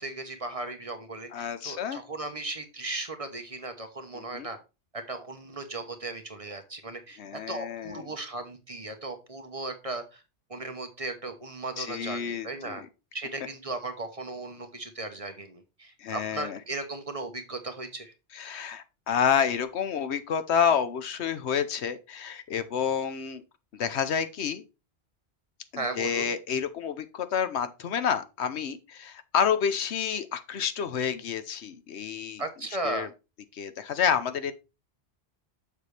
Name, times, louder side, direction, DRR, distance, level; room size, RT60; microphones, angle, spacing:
voice 1, 0.0-4.6 4.9-10.2 10.5-12.8 13.1-18.1 25.8-26.3 32.4-33.1, right 2 dB, 35° right, 1.0 m, -36 dB
voice 2, 1.3-2.0 4.1-4.5 7.2-8.1 11.8-12.9 16.0-16.6 18.3-23.4 23.7-24.6 25.7-32.4 32.8-33.1 33.5-34.5, left 7 dB, 80° left, 1.1 m, -29 dB
6.8 x 6.7 x 3.3 m
omnidirectional pair, 1.1 m